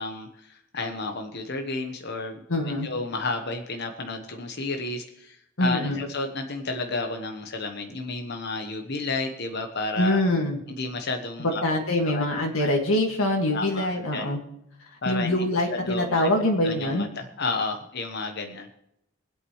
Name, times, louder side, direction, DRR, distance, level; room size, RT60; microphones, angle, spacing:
voice 1, 0.0-2.4 2.8-10.2 10.7-11.6 12.0-12.2 12.6-12.7 13.5-14.3 15.0-15.4 15.7-16.3 16.6-18.7, left 3 dB, 55° left, 5 dB, 1.1 m, -32 dB
voice 2, 2.5-2.9 5.6-6.0 10.0-10.6 11.4-14.4 15.1-17.1, left 1 dB, 80° left, 1 dB, 2.0 m, -24 dB
25.0 x 8.4 x 3.2 m, 0.79 s
head